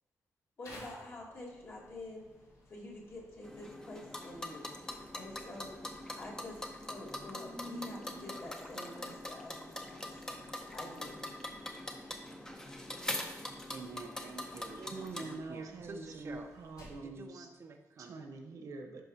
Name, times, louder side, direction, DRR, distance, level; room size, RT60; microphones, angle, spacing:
sound 1, 0.6-17.1, left 1 dB, 85° left, 2.6 m, -60 dB
voice 1, 0.6-2.3 2.7-10.3 10.7-11.2, left 1 dB, 40° left, -3 dB, 1.7 m, -48 dB
sound 2, 3.4-15.4, left 1 dB, 10° left, 0.6 m, -43 dB
voice 2, 13.7-14.9 15.2-16.5 17.0-18.2, right 4 dB, 45° right, 4 dB, 0.5 m, -48 dB
voice 3, 14.7-17.5 18.0-19.1, right 3 dB, 75° right, 4 dB, 1.0 m, -45 dB
10.5 x 5.5 x 2.7 m, 1.1 s
wide cardioid pair, 165°, 6 cm